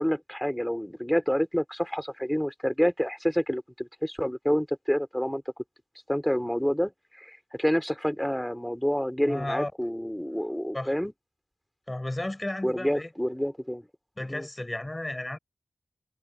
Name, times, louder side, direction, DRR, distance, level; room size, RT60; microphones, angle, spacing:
voice 1, 0.0-5.4 6.1-6.9 7.2-11.1 12.6-13.9 14.3-14.4, equal, 5° left, 3.2 m, -28 dB
voice 2, 9.3-9.7 10.7-10.9 11.9-13.1 14.2-15.4, left 1 dB, 20° left, 6.0 m, -33 dB
wide cardioid pair, 60°, 0 cm